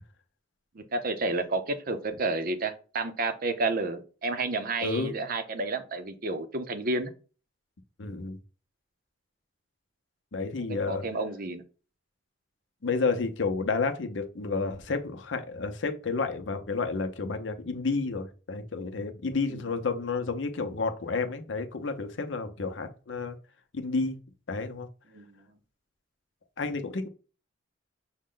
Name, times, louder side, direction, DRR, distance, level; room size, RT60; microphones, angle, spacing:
voice 1, 0.7-7.1 10.9-11.6 19.5-19.6 25.1-25.4, right 3 dB, 50° right, 9 dB, 0.6 m, -31 dB
voice 2, 4.8-5.1 8.0-8.4 10.3-11.0 12.8-23.4 23.7-24.2 24.5-24.9 26.6-27.1, left 4 dB, 70° left, 7 dB, 0.6 m, -30 dB
6.3 x 2.1 x 3.8 m, 0.36 s
head